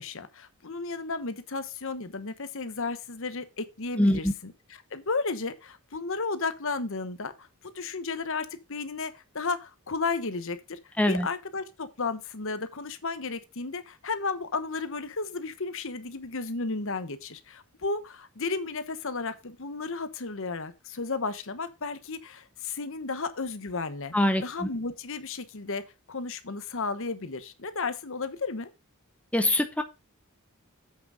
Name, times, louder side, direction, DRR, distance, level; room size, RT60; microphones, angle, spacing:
voice 1, 0.0-10.8 11.1-24.1 24.4-25.8 26.1-28.7, left 4 dB, 60° left, 1.1 m, -33 dB
voice 2, 4.0-4.3 11.0-11.3 24.1-24.7 29.3-29.8, left 1 dB, 5° left, 0.7 m, -24 dB
8.0 x 6.1 x 4.9 m
head